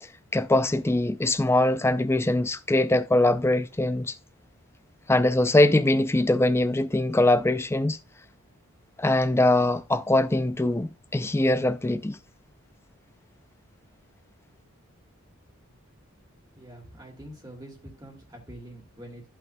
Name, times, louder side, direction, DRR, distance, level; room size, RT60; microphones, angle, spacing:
voice 1, 0.0-4.2 5.1-8.0 9.0-12.2, left 1 dB, 10° left, 0.4 m, -22 dB
voice 2, 16.5-19.2, right 1 dB, 20° right, 2.4 m, -45 dB
13.5 x 5.9 x 2.2 m
head